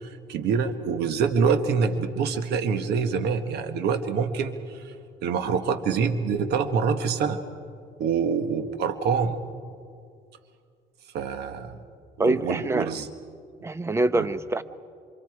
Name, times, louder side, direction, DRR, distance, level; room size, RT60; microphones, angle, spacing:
voice 1, 0.0-4.9 5.2-7.4 8.0-9.4 11.1-11.8 12.2-13.1 14.1-14.3, right 6 dB, 80° right, 9 dB, 1.3 m, -26 dB
voice 2, 12.2-12.9 13.6-14.6, right 2 dB, 15° right, 13 dB, 0.8 m, -24 dB
28.0 x 26.0 x 4.8 m, 2.2 s
cardioid pair, 110°, 17 cm